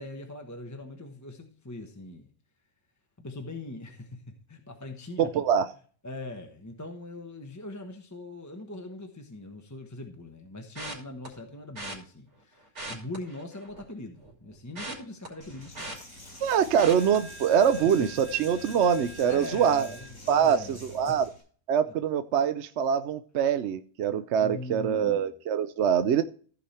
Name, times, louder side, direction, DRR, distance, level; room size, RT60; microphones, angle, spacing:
voice 1, 0.0-2.3 3.2-4.2 4.5-5.3 6.0-16.0 19.3-20.8 21.0-21.2 24.4-25.2, left 2 dB, 15° left, 1.0 m, -41 dB
voice 2, 5.2-5.7 16.4-19.9 20.3-21.3 21.7-26.2, right 8 dB, 65° right, 0.8 m, -24 dB
sound 1, 10.8-11.3 11.8-12.0 12.6-13.9 14.2-16.4 16.8-17.2 17.6-17.9 18.2-18.3, right 1 dB, 85° right, 3.4 m, -40 dB
Coin (dropping), 15.4-21.4, equal, 70° left, 5.9 m, -45 dB
14.5 x 5.1 x 4.2 m
omnidirectional pair, 1.5 m